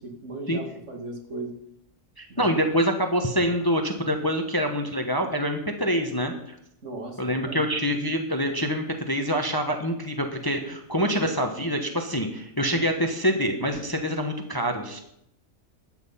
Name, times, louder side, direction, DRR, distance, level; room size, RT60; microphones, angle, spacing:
voice 1, 0.0-1.5 2.3-2.5 6.8-7.6, right 2 dB, 55° right, 2 dB, 2.7 m, -37 dB
voice 2, 2.2-6.6 7.2-15.0, equal, 15° left, 5 dB, 1.1 m, -26 dB
13.0 x 8.9 x 5.7 m, 0.76 s
omnidirectional pair, 1.5 m